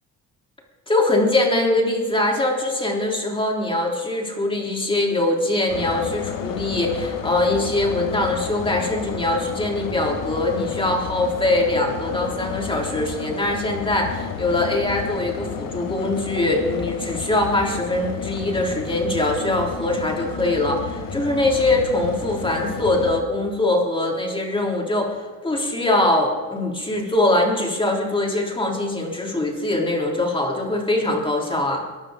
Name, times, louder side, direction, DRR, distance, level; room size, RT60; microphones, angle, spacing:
voice 1, 0.9-31.8, left 2 dB, 15° left, 0 dB, 3.5 m, -22 dB
sound 1, 5.7-23.2, left 6 dB, 75° left, 1.5 m, -31 dB
22.5 x 13.0 x 3.8 m, 1.4 s
cardioid pair, 130°, 33 cm